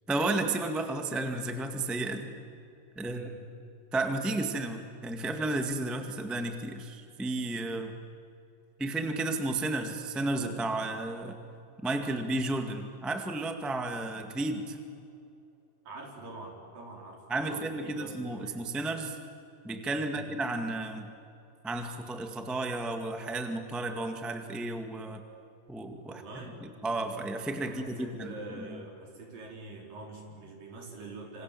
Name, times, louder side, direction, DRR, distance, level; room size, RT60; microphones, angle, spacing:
voice 1, 0.1-2.3 2.9-3.3 3.9-7.9 8.8-11.4 11.8-14.8 17.3-19.2 19.6-21.1 21.6-25.2 25.7-28.8, right 2 dB, ahead, 5 dB, 0.4 m, -33 dB
voice 2, 3.0-3.4 15.9-17.2 17.5-18.6 20.0-20.3 26.0-26.6 27.6-31.4, right 2 dB, 70° right, 0 dB, 6.1 m, -45 dB
27.0 x 26.5 x 7.7 m, 2.7 s
omnidirectional pair, 4.1 m